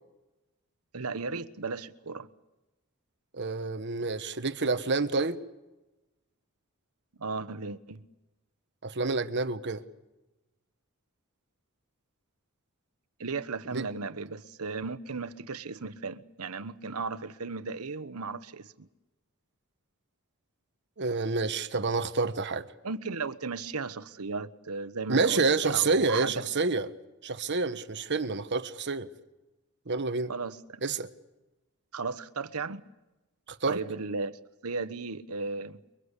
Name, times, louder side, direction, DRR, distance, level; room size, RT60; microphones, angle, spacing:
voice 1, 0.9-2.3 7.2-8.0 13.2-18.9 22.8-26.4 30.3-30.8 31.9-32.8 33.7-35.8, right 4 dB, 80° right, 1.1 m, -35 dB
voice 2, 3.4-5.4 8.8-9.8 13.7-13.8 21.0-22.7 25.1-26.9 27.2-29.1 29.9-30.3 30.8-31.1 33.5-33.8, right 3 dB, 50° right, 1.3 m, -28 dB
29.0 x 22.5 x 8.3 m
head